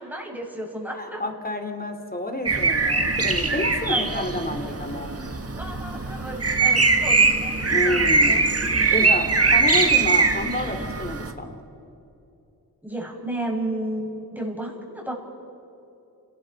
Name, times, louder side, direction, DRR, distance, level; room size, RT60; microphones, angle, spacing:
voice 1, 0.0-1.2 3.9-4.3 5.5-9.3 12.8-15.1, right 1 dB, 5° right, -2 dB, 6.8 m, -33 dB
voice 2, 0.9-5.1 7.7-8.5 8.9-11.6, left 1 dB, 25° left, 6 dB, 3.2 m, -29 dB
sound 1, 2.5-11.3, right 4 dB, 40° right, 1.8 m, -21 dB
29.5 x 19.5 x 4.8 m, 2.8 s
cardioid pair, 40°, 38 cm